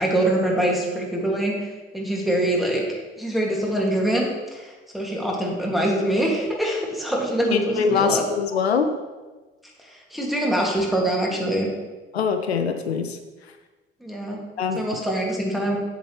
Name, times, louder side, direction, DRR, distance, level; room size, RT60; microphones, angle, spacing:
voice 1, 0.0-8.2 9.9-11.7 14.0-14.4 14.7-15.8, right 1 dB, ahead, -2 dB, 2.3 m, -24 dB
voice 2, 7.5-8.9 12.1-13.2 14.6-14.8, left 6 dB, 85° left, 8 dB, 0.5 m, -23 dB
7.7 x 7.5 x 3.2 m, 1.2 s
figure-of-eight pair, 50°, 31 cm